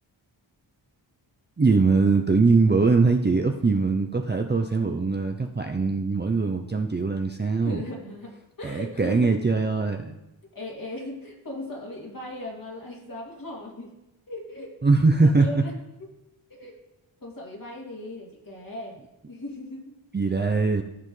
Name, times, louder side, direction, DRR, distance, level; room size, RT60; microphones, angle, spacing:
voice 1, 1.6-7.8 8.6-10.2 14.8-15.6 20.1-20.8, right 4 dB, 20° right, 3 dB, 0.6 m, -22 dB
voice 2, 7.6-9.3 10.5-14.0 14.3-14.8 15.2-15.7 16.0-16.1 16.5-16.8 17.2-19.0 19.3-19.9, left 1 dB, 45° left, -2 dB, 2.6 m, -38 dB
14.5 x 5.4 x 3.3 m, 0.94 s
wide cardioid pair, 75°, 47 cm